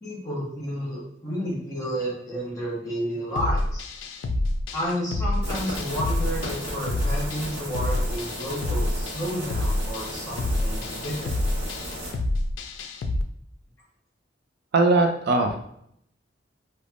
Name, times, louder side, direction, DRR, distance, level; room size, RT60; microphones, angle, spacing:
voice 1, 0.0-3.9 4.7-11.4, equal, 20° left, -6 dB, 1.2 m, -31 dB
sound 1, 3.4-13.2, left 1 dB, 75° left, 0.3 m, -28 dB
sound 2, 5.4-12.1, equal, 35° right, 1.2 m, -35 dB
voice 2, 14.7-15.6, right 2 dB, 60° right, 3 dB, 0.3 m, -20 dB
3.3 x 2.0 x 2.4 m, 0.71 s
head